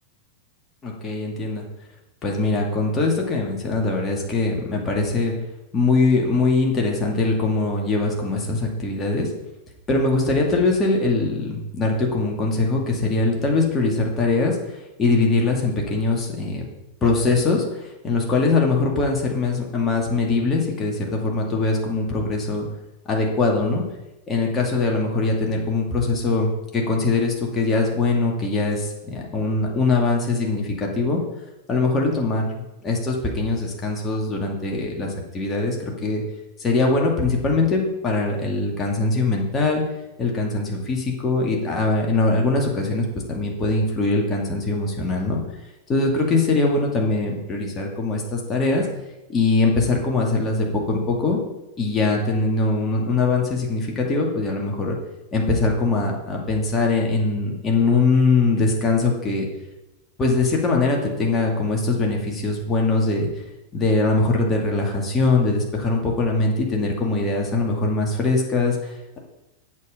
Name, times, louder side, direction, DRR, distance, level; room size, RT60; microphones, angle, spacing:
voice 1, 0.8-1.6 2.2-5.3 5.7-9.3 9.9-14.6 15.0-16.7 17.0-22.6 23.1-23.8 24.3-31.2 31.7-36.2 36.6-39.8 40.2-45.4 45.9-48.9 49.3-51.4 51.8-55.0 55.3-59.4 60.2-63.3 63.7-69.2, left 3 dB, 25° left, 0 dB, 2.2 m, -22 dB
8.3 x 7.0 x 5.0 m, 0.98 s
figure-of-eight pair, 90°, 0 cm